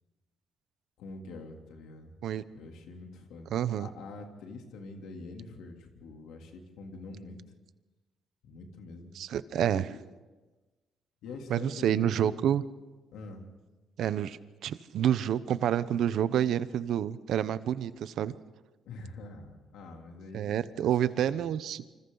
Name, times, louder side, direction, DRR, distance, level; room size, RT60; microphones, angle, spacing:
voice 1, 1.0-2.1 2.5-3.5 3.8-7.4 8.4-9.2 9.7-9.8 11.2-12.5 13.1-13.5 18.8-20.9 21.2-21.4, left 3 dB, 85° left, 3 dB, 3.1 m, -45 dB
voice 2, 3.5-3.9 9.2-9.9 11.5-12.6 14.0-18.3 20.3-21.8, right 10 dB, 75° right, 15 dB, 0.8 m, -28 dB
27.5 x 26.0 x 4.0 m, 1.2 s
cardioid pair, 90°, 0 cm